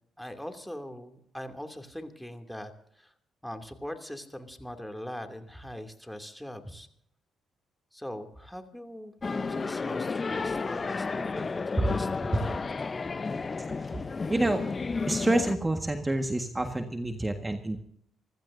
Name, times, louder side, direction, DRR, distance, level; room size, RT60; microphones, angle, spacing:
voice 1, 0.2-3.1 3.4-6.9 7.9-12.6, equal, 5° left, 5 dB, 2.7 m, -41 dB
sound 1, 9.2-15.6, left 4 dB, 40° left, 0.8 m, -32 dB
voice 2, 14.3-14.6 15.1-17.8, right 1 dB, 20° right, 5 dB, 1.6 m, -28 dB
27.0 x 15.5 x 2.7 m, 0.70 s
hypercardioid pair, 45°, 0 cm